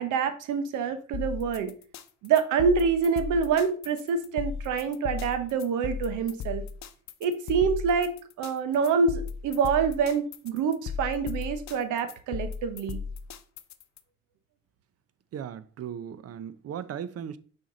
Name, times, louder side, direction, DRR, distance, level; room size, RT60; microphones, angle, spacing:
voice 1, 0.0-1.7 2.2-6.6 7.2-13.0, right 6 dB, 90° right, 0.9 m, -26 dB
sound 1, 1.1-14.0, left 6 dB, 65° left, 0.7 m, -36 dB
voice 2, 15.3-17.4, right 8 dB, 55° right, 0.6 m, -37 dB
6.2 x 4.3 x 3.8 m
cardioid pair, 90°, 30 cm